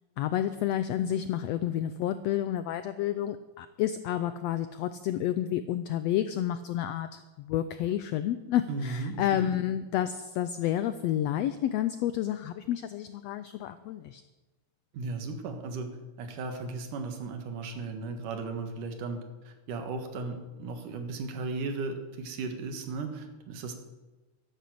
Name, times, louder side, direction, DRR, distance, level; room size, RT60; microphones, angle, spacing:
voice 1, 0.2-14.2, left 11 dB, 85° left, 12 dB, 1.4 m, -30 dB
voice 2, 8.7-9.5 14.9-19.2 19.4-23.8, right 3 dB, 85° right, 6 dB, 3.1 m, -36 dB
12.5 x 11.0 x 7.7 m, 1.1 s
omnidirectional pair, 3.6 m